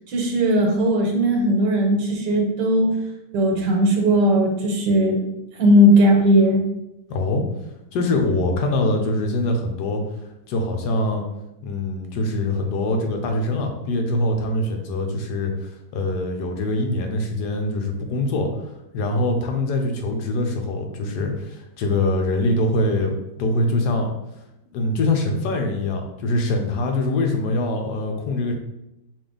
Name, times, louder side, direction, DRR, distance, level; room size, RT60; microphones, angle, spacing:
voice 1, 0.1-3.0 3.3-5.2 5.6-6.6, equal, 85° right, 0 dB, 1.5 m, -17 dB
voice 2, 7.1-7.4 7.9-10.0 10.5-11.2 11.6-23.1 23.4-24.1 24.7-28.5, left 2 dB, 75° left, 3 dB, 1.2 m, -23 dB
5.0 x 2.4 x 3.7 m, 0.90 s
omnidirectional pair, 1.8 m